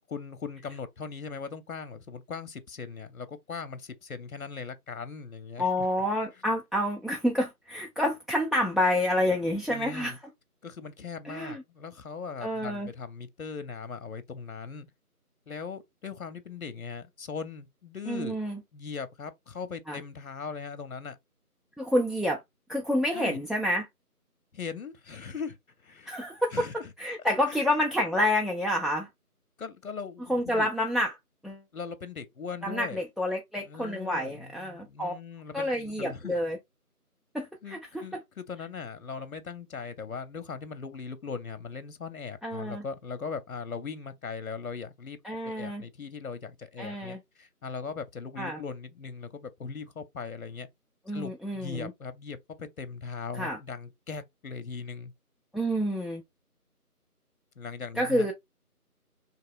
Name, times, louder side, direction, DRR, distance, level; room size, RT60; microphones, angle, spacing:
voice 1, 0.1-5.9 9.7-10.2 10.6-14.9 15.5-18.4 18.7-21.2 23.1-23.4 24.5-25.6 25.8-26.2 26.5-26.9 27.5-27.7 29.6-30.7 31.7-33.0 33.6-36.4 37.6-45.2 45.4-50.7 51.1-55.1 57.6-58.3, left 5 dB, 65° left, 0.6 m, -39 dB
voice 2, 5.6-10.2 11.2-11.6 12.4-12.9 18.1-18.6 19.9-20.0 21.8-22.4 22.7-23.9 26.1-26.7 27.0-29.1 30.3-31.1 31.4-31.6 32.6-35.1 35.5-36.6 37.3-38.0 42.4-42.8 45.2-45.8 46.8-47.2 48.4-48.6 51.1-51.9 53.4-53.6 55.5-56.2 58.0-58.3, left 1 dB, ahead, 0.3 m, -28 dB
3.0 x 2.7 x 2.3 m
figure-of-eight pair, 180°, 46 cm